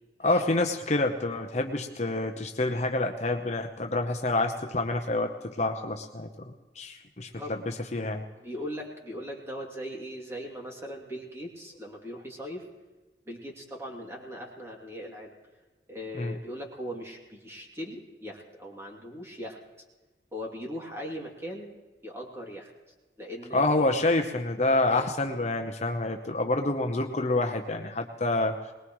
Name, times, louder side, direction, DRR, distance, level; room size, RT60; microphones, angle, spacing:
voice 1, 0.2-5.3 5.6-8.2 16.1-16.3 23.5-28.6, left 2 dB, 40° left, 4 dB, 0.9 m, -27 dB
voice 2, 8.4-12.6 13.3-15.3 15.9-19.6 20.3-21.7 22.0-22.7 23.2-23.8 24.9-25.1, equal, 15° right, -1 dB, 2.8 m, -39 dB
22.5 x 20.5 x 3.1 m, 1.2 s
head